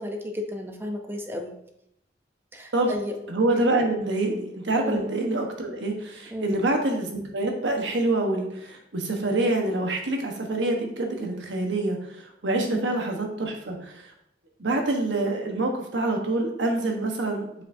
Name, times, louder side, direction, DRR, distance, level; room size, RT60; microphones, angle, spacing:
voice 1, 0.0-1.6 2.5-3.1 4.8-5.1 6.3-6.6 12.7-12.9, left 1 dB, 10° right, 3 dB, 0.7 m, -32 dB
voice 2, 3.3-14.1 14.6-17.6, right 2 dB, 85° right, 2 dB, 1.2 m, -26 dB
7.4 x 5.7 x 2.7 m, 0.78 s
head